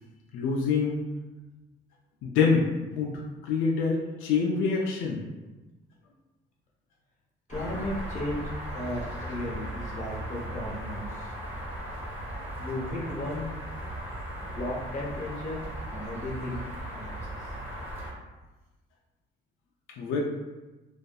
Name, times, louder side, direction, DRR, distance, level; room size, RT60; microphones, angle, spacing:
voice 1, 0.3-1.0 2.2-5.2 20.0-20.2, left 5 dB, 90° left, -1 dB, 0.4 m, -26 dB
voice 2, 7.5-8.4 8.7-11.3 12.6-13.5 14.4-16.6 16.9-17.5, left 1 dB, 40° left, -3 dB, 0.7 m, -35 dB
sound 1, 7.5-18.1, equal, 10° right, 1.0 m, -37 dB
2.6 x 2.3 x 2.3 m, 1.1 s
cardioid pair, 90°, 20 cm